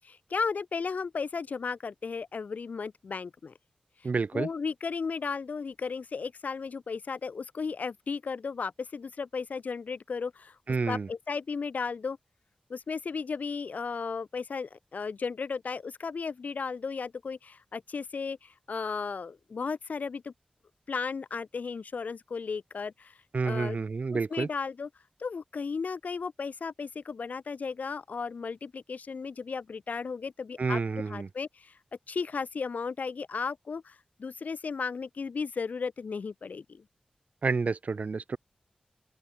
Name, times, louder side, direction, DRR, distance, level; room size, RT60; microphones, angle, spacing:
voice 1, 0.1-3.5 4.3-10.6 10.8-12.2 12.7-20.3 20.9-23.2 23.4-23.8 24.3-24.9 25.2-30.8 31.1-31.8 32.1-36.8, left 5 dB, 80° left, 0.9 m, -35 dB
voice 2, 4.0-4.5 10.7-11.1 23.3-24.5 30.6-31.3 37.4-38.4, right 4 dB, 65° right, 1.4 m, -29 dB
open air
wide cardioid pair, 65°, 3 cm